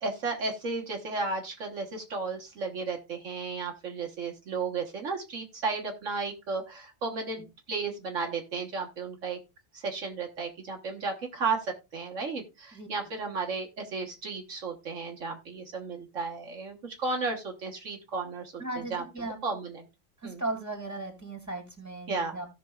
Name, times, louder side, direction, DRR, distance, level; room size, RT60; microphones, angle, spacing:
voice 1, 0.0-9.4 9.7-19.9 20.2-20.4 22.1-22.3, right 4 dB, 70° right, 1 dB, 1.6 m, -34 dB
voice 2, 18.6-19.4 20.2-22.5, right 2 dB, 15° right, 4 dB, 2.5 m, -36 dB
17.0 x 6.0 x 2.3 m, 0.27 s
omnidirectional pair, 1.3 m